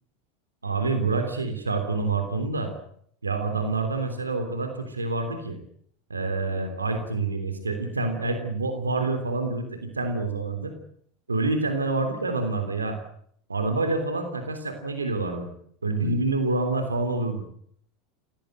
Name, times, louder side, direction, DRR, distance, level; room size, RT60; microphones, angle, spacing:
voice 1, 0.6-2.7 3.2-5.6 6.1-10.7 11.3-13.0 13.5-15.5 15.8-17.4, right 3 dB, 90° right, 7 dB, 3.3 m, -27 dB
26.0 x 18.0 x 7.8 m, 0.66 s
figure-of-eight pair, 80°, 0 cm